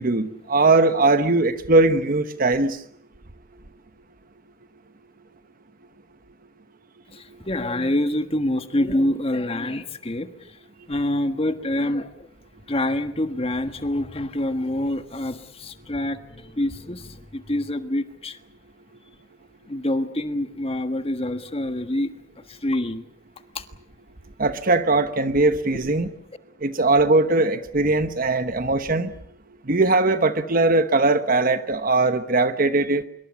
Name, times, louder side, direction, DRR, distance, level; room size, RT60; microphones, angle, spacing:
voice 1, 0.0-2.8 24.4-26.1 26.6-29.1 29.7-33.0, right 2 dB, 45° right, 10 dB, 1.1 m, -20 dB
voice 2, 7.1-10.6 10.9-12.3 12.7-18.4 19.7-22.1 22.5-23.1 23.5-23.7, left 1 dB, 30° left, 9 dB, 1.5 m, -26 dB
26.0 x 23.5 x 7.2 m, 0.70 s
head